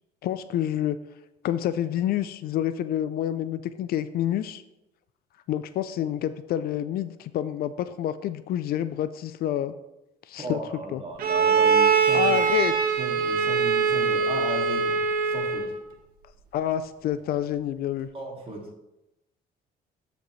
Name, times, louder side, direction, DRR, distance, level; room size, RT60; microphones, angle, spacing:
voice 1, 0.2-1.0 1.4-4.6 5.5-9.7 10.3-11.0 12.1-12.7 16.5-18.1, left 11 dB, 65° left, 13 dB, 0.4 m, -28 dB
voice 2, 10.4-12.6 13.0-15.0 15.2-15.7 18.1-18.7, right 1 dB, 35° right, 0 dB, 2.1 m, -36 dB
Bowed string instrument, 11.2-15.8, right 5 dB, 60° right, 1.1 m, -22 dB
12.5 x 5.1 x 3.2 m, 0.93 s
cardioid pair, 110°, 17 cm